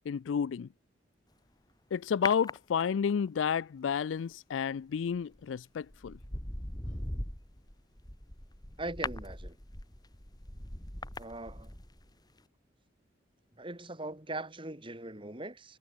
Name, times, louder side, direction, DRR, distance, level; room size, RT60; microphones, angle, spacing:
voice 1, 0.1-0.7 1.9-6.2, left 7 dB, 90° left, 0.4 m, -31 dB
sound 1, 2.3-3.3 5.2-5.4 5.9-12.1 12.4-12.5, left 2 dB, 20° left, 2.8 m, -40 dB
voice 2, 8.8-9.6 11.2-11.7 13.6-15.8, right 2 dB, 25° right, 3.6 m, -40 dB
head